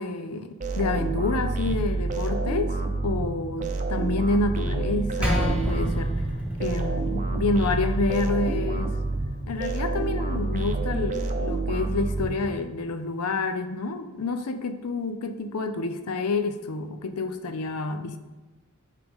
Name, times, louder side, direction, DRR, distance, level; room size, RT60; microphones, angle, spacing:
voice 1, 0.0-2.7 3.0-6.1 6.6-8.9 9.5-18.2, left 3 dB, 90° left, 9 dB, 0.6 m, -28 dB
sound 1, 0.6-12.8, right 3 dB, 35° right, 0.6 m, -28 dB
Percussion, 5.2-10.0, right 1 dB, 5° right, 1.1 m, -31 dB
9.0 x 3.8 x 3.6 m, 1.2 s
head